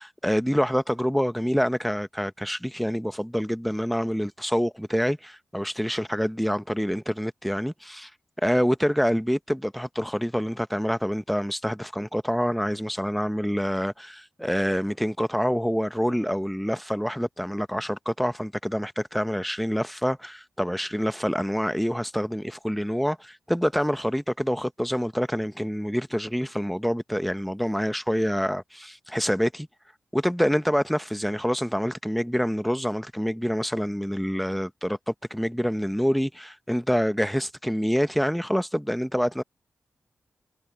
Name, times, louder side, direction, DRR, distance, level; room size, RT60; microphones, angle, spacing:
voice 1, 0.0-8.1 8.4-29.7 30.1-39.4, equal, ahead, 1.1 m, -26 dB
cardioid pair, 50°, 5 cm